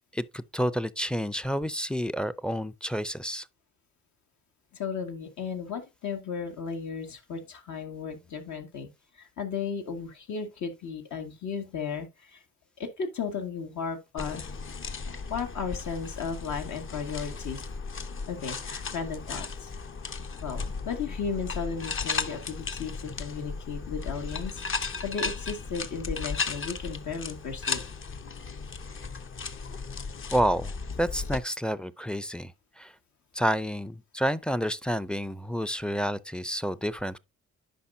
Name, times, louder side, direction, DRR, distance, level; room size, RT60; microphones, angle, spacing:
voice 1, 0.1-3.5 30.3-30.7 31.0-32.9 33.3-37.2, equal, 5° left, 0.5 m, -29 dB
voice 2, 4.7-8.9 9.1-12.4 12.8-14.5 15.3-17.6 18.3-19.7 20.4-27.8, left 6 dB, 70° left, 2.1 m, -35 dB
sound 1, 14.2-31.4, left 4 dB, 40° left, 1.0 m, -35 dB
10.0 x 5.4 x 2.7 m
cardioid pair, 90°, 30 cm